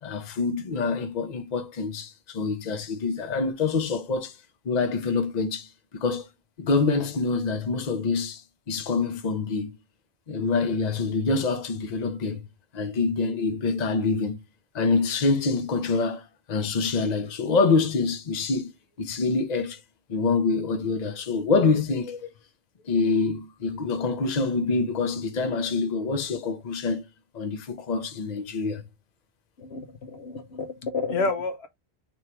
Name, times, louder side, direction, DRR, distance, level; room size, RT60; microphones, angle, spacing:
voice 1, 0.0-4.4 4.6-5.7 6.0-6.3 6.6-8.4 8.7-9.8 10.3-12.4 12.7-14.4 14.7-18.7 19.0-19.8 20.1-22.3 22.9-27.0 27.3-28.8, left 4 dB, 45° left, 0.8 m, -26 dB
voice 2, 29.6-31.7, left 3 dB, 90° left, 1.1 m, -30 dB
3.6 x 3.1 x 4.3 m
omnidirectional pair, 1.1 m